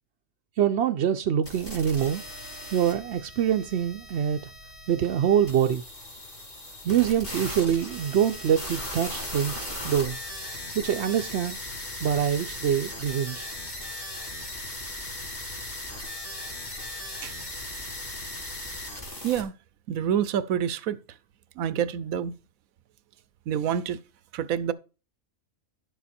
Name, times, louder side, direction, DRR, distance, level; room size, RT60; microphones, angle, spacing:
voice 1, 0.6-2.2 2.7-4.4 4.9-5.8 6.8-10.2 10.7-11.6 12.0-13.5, right 9 dB, 60° right, 0.8 m, -25 dB
sound 1, 1.4-19.4, left 1 dB, 30° left, 3.6 m, -38 dB
voice 2, 19.9-21.0 21.6-22.3 23.5-24.0 24.3-24.7, right 9 dB, 85° right, 1.1 m, -27 dB
11.0 x 7.2 x 4.2 m
omnidirectional pair, 1.4 m